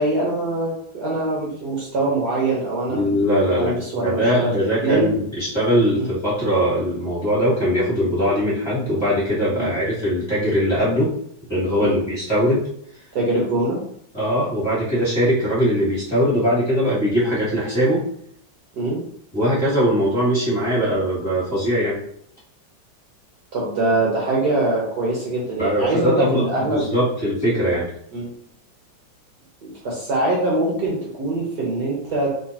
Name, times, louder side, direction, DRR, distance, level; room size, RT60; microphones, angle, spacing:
voice 1, 0.0-3.0 3.5-4.5 4.8-5.1 6.0-6.1 9.6-9.7 11.8-12.0 13.1-13.8 18.7-19.0 23.5-26.8 28.1-28.3 29.6-32.3, right 2 dB, 55° right, -4 dB, 1.5 m, -23 dB
voice 2, 2.9-3.7 4.0-11.1 11.5-12.6 14.1-18.0 19.3-22.0 25.6-27.9, equal, 15° left, -9 dB, 1.9 m, -21 dB
5.2 x 3.4 x 2.9 m, 0.66 s
omnidirectional pair, 2.2 m